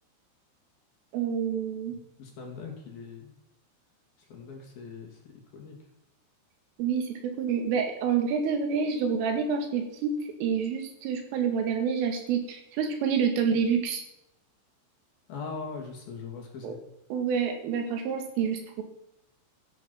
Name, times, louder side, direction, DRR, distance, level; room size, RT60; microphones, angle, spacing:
voice 1, 1.1-1.9 6.8-14.0 16.6-16.7 17.1-18.8, right 6 dB, 85° right, 4 dB, 4.7 m, -28 dB
voice 2, 1.9-3.4 4.2-5.8 15.3-16.8, left 5 dB, 55° left, 1 dB, 4.2 m, -41 dB
14.5 x 11.0 x 5.9 m, 0.80 s
omnidirectional pair, 5.7 m